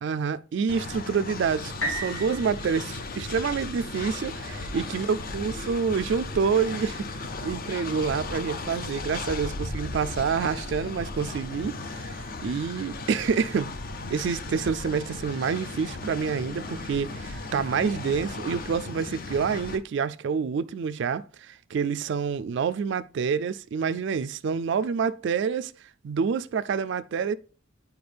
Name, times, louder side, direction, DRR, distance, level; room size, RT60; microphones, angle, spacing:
voice 1, 0.0-13.7 14.1-25.7 26.0-27.4, right 6 dB, 60° right, 0.3 m, -28 dB
Train, 0.7-19.8, left 3 dB, 45° left, 0.6 m, -36 dB
sound 1, 1.8-5.7 6.3-6.4, equal, 85° left, 2.3 m, -37 dB
9.5 x 4.6 x 3.3 m
head